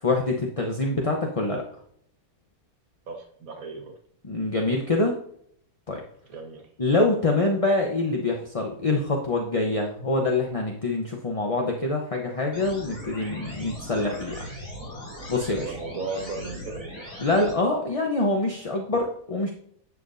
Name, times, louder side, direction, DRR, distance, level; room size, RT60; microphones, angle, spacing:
voice 1, 0.0-1.6 4.2-5.1 5.9-6.0 6.8-14.5 15.3-15.8 17.2-19.5, left 2 dB, 30° left, 1 dB, 0.7 m, -25 dB
voice 2, 3.1-3.9 6.3-6.6 15.6-17.0, right 3 dB, 60° right, 3 dB, 1.8 m, -35 dB
sound 1, 12.5-17.5, equal, 45° left, 4.1 m, -39 dB
11.0 x 7.2 x 2.6 m, 0.66 s
omnidirectional pair, 1.7 m